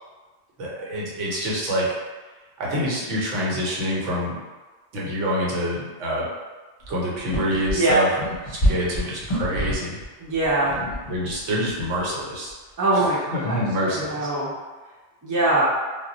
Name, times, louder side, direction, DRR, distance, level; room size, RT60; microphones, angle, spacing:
voice 1, 0.6-1.9 2.6-4.4 4.9-6.3 6.9-10.0 10.7-12.5 12.9-14.3, equal, 80° right, -4 dB, 1.1 m, -26 dB
sound 1, 6.8-6.9 7.2-10.0 10.3-11.4 11.7-12.0, equal, 35° left, 0.7 m, -26 dB
voice 2, 10.2-10.8 12.8-13.6 13.9-14.5 15.2-15.7, right 2 dB, 20° right, -7 dB, 0.5 m, -22 dB
2.3 x 2.0 x 3.8 m, 1.3 s
omnidirectional pair, 1.2 m